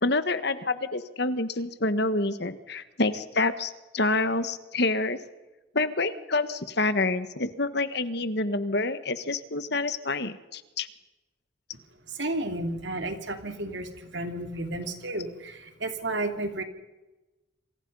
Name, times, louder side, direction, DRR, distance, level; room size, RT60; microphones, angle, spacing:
voice 1, 0.0-5.2 5.7-10.9, left 2 dB, 55° left, 12 dB, 1.4 m, -27 dB
voice 2, 12.1-16.6, right 2 dB, 60° right, 6 dB, 2.9 m, -32 dB
27.5 x 26.5 x 5.5 m, 1.1 s
head